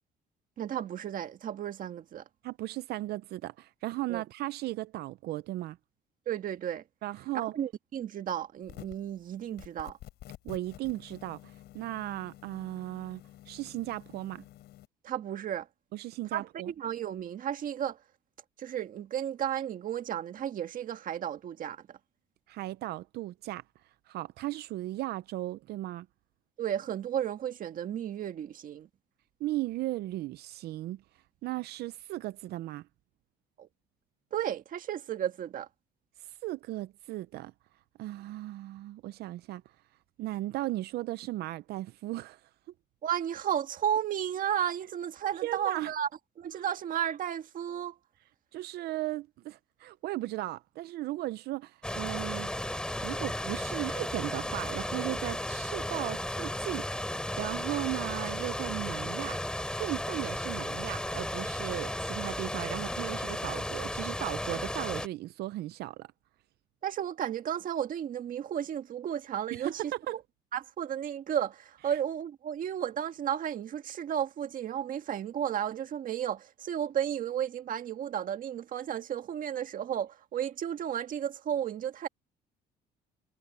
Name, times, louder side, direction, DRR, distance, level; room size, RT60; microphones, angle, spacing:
voice 1, 0.6-2.2 4.1-4.2 6.2-6.8 7.3-10.0 15.0-15.7 16.3-18.0 18.6-22.0 26.6-28.9 33.6-33.7 34.3-35.7 43.0-46.1 46.4-47.9 66.8-69.8 70.1-70.2 70.5-82.1, right 10 dB, 55° right, 1.7 m, -33 dB
voice 2, 2.4-5.8 7.0-7.5 10.4-14.4 15.9-16.7 22.5-23.6 24.1-26.1 29.4-31.0 31.4-32.9 36.2-37.5 38.0-39.6 40.2-42.4 45.4-45.9 48.5-52.6 53.0-56.9 57.4-59.4 59.8-66.1 69.5-70.2 71.9-72.0, right 16 dB, 70° right, 0.6 m, -36 dB
sound 1, 8.6-9.1 9.6-14.9, left 14 dB, 75° left, 7.5 m, -50 dB
sound 2, 51.8-65.1, left 1 dB, 5° left, 3.3 m, -34 dB
cardioid pair, 110°, 17 cm